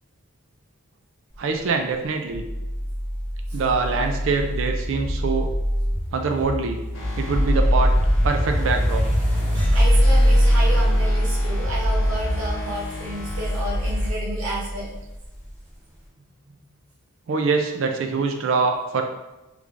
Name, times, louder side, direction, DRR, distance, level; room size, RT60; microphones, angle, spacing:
voice 1, 1.4-2.5 3.5-5.5 6.1-6.8 7.2-7.9 8.2-9.0 17.3-19.0, right 4 dB, 60° right, 4 dB, 0.3 m, -24 dB
Car drive by with bass, 2.3-15.5, equal, 40° right, 1.4 m, -22 dB
sound 1, 6.9-14.1, left 1 dB, 55° left, 0.9 m, -29 dB
voice 2, 9.7-14.9, right 1 dB, 75° right, -6 dB, 0.9 m, -31 dB
3.4 x 3.1 x 2.5 m, 1.0 s
head